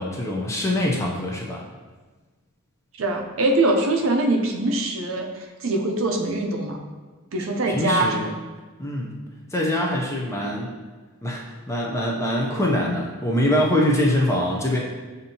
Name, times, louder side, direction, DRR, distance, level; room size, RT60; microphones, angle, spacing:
voice 1, 0.0-1.6 7.7-8.3 8.8-9.2 9.5-10.8 11.2-14.8, left 1 dB, 15° left, -2 dB, 0.5 m, -24 dB
voice 2, 3.0-5.3 5.6-6.8 7.3-8.3, right 2 dB, 70° right, 2 dB, 0.5 m, -23 dB
6.9 x 2.6 x 2.8 m, 1.3 s
head